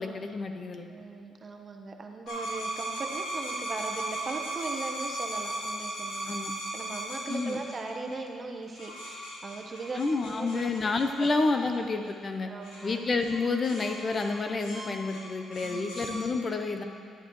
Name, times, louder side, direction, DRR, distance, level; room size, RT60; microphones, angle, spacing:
voice 1, 0.0-0.9 6.3-6.5 7.3-7.6 9.9-12.5 12.8-16.8, left 3 dB, 40° left, 6 dB, 0.7 m, -29 dB
voice 2, 0.9-6.4 6.7-10.6 11.2-11.4 12.5-13.0 15.6-15.9, right 3 dB, 35° right, 3 dB, 1.0 m, -39 dB
sound 1, 2.3-8.2 8.7-12.1 12.6-12.8 13.2-13.4 13.6-16.2, right 1 dB, 90° left, 2.5 m, -37 dB
11.0 x 11.0 x 3.1 m, 2.2 s
cardioid pair, 90°, 0 cm